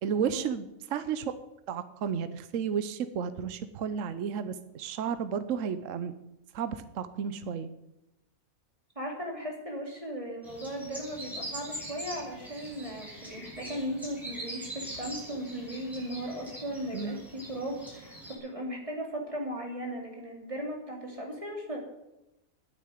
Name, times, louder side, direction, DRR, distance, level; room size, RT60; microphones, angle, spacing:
voice 1, 0.0-1.3 1.7-6.1 6.5-7.7 16.9-17.2, right 7 dB, 65° right, 12 dB, 1.1 m, -32 dB
voice 2, 8.9-21.8, equal, 20° right, 1 dB, 3.1 m, -37 dB
sound 1, 10.4-18.3, right 1 dB, ahead, 6.3 m, -43 dB
10.5 x 9.6 x 9.3 m, 0.91 s
omnidirectional pair, 1.5 m